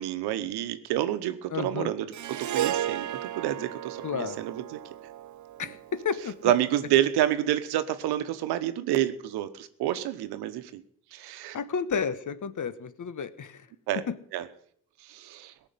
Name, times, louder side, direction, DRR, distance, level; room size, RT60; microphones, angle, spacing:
voice 1, 0.0-4.8 5.6-5.7 6.4-10.8 11.1-11.6 13.9-14.0 14.3-14.4 15.0-15.5, right 12 dB, 85° right, 11 dB, 1.1 m, -29 dB
voice 2, 1.5-1.9 4.0-4.4 5.6-6.5 11.5-13.6 14.1-14.2, left 6 dB, 50° left, 14 dB, 1.3 m, -31 dB
Harp, 2.1-6.6, right 11 dB, 50° right, 0.7 m, -34 dB
17.5 x 6.4 x 9.4 m, 0.65 s
supercardioid pair, 50°, 38 cm